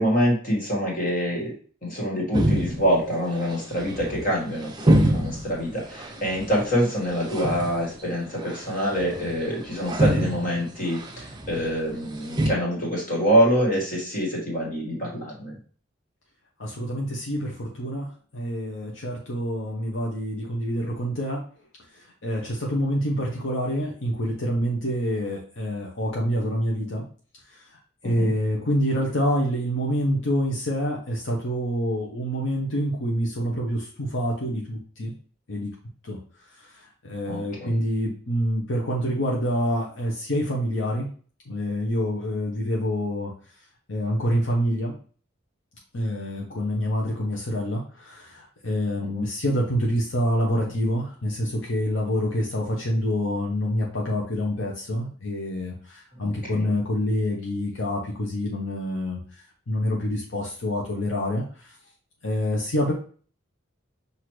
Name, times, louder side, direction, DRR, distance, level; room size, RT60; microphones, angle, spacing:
voice 1, 0.0-1.5 1.8-15.6 28.0-28.3 37.3-37.8 49.1-49.2 56.2-56.7, equal, 45° left, -2 dB, 1.8 m, -25 dB
sound 1, 2.3-12.5, right 1 dB, 20° right, 0.6 m, -27 dB
voice 2, 16.6-21.4 22.2-27.0 27.5-27.6 28.0-35.1 35.5-35.7 36.0-36.2 36.6-41.1 41.5-43.3 43.9-44.9 45.9-59.2 59.7-61.8 62.2-62.9, equal, 75° left, -2 dB, 0.9 m, -27 dB
6.0 x 2.7 x 3.1 m, 0.42 s
head